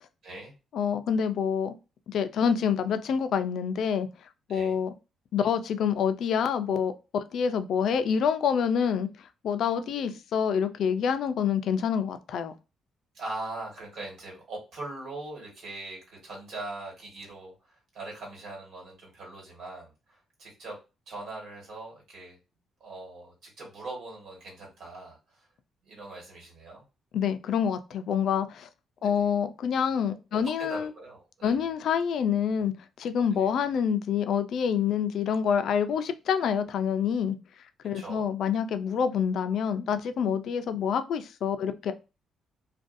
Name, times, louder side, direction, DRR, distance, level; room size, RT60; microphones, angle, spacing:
voice 1, 0.2-0.5 4.5-4.8 13.1-20.8 21.1-22.4 22.8-25.5 25.8-26.8 29.0-29.3 30.3-31.6 33.3-33.5 37.9-38.3, right 2 dB, 70° right, -2 dB, 1.5 m, -41 dB
voice 2, 0.7-1.7 2.1-4.1 4.5-4.9 5.3-9.1 9.4-12.5 27.1-28.7 29.0-30.9 31.4-32.7 33.0-37.4 37.8-41.9, left 7 dB, 70° left, 10 dB, 0.3 m, -27 dB
2.5 x 2.2 x 2.5 m, 0.29 s
cardioid pair, 90°, 0 cm